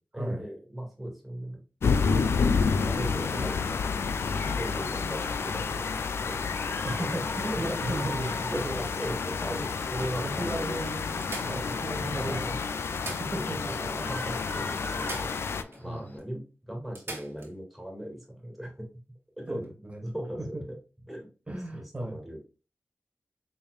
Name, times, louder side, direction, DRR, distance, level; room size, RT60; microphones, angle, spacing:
voice 1, 0.1-1.6 2.0-2.6 2.8-3.6 4.6-6.4 6.8-7.0 7.5-7.6 8.2-9.5 9.9-10.8 11.4-11.7 12.1-12.5 13.5-15.3 15.8-18.9 19.4-19.6 20.0-20.8 21.1-21.3 21.7-22.4, right 1 dB, ahead, 0 dB, 2.0 m, -38 dB
sound 1, 1.8-15.6, left 5 dB, 90° left, 0.3 m, -30 dB
voice 2, 3.3-3.6 4.0-4.1 6.8-8.3 8.6-8.8 9.4-9.7 10.2-12.5 13.2-13.9 14.9-15.4 15.8-16.1 19.5-20.0 20.5-20.6 21.5-22.2, right 1 dB, 30° right, 1 dB, 1.5 m, -35 dB
Shout, 4.1-16.2, left 2 dB, 45° left, 1.2 m, -45 dB
sound 2, 8.2-9.3 10.0-10.1 10.4-10.5 11.2-12.2 12.8-13.8 14.1-14.2 15.0-15.8 16.2-16.3 16.9-17.5 19.5-19.7, right 2 dB, 70° right, 1.3 m, -43 dB
4.4 x 3.6 x 2.4 m, 0.33 s
cardioid pair, 55°, 4 cm